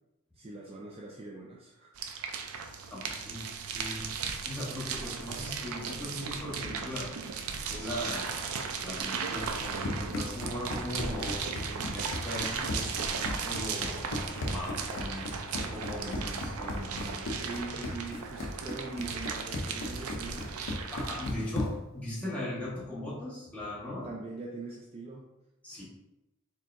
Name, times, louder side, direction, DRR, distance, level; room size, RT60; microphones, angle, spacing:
voice 1, 0.4-1.9 17.3-20.5 24.0-25.3, right 3 dB, 25° right, -2 dB, 0.3 m, -42 dB
sound 1, 2.0-21.3, right 5 dB, 90° right, 0.5 m, -36 dB
voice 2, 2.9-3.4 3.7-4.1 4.4-7.1 7.7-8.3 8.8-15.3 15.6-17.2 20.9-24.1 25.6-25.8, left 1 dB, 5° left, -7 dB, 1.1 m, -39 dB
Run, 9.5-22.0, left 1 dB, 60° left, 0.5 m, -37 dB
4.4 x 3.6 x 2.5 m, 0.92 s
head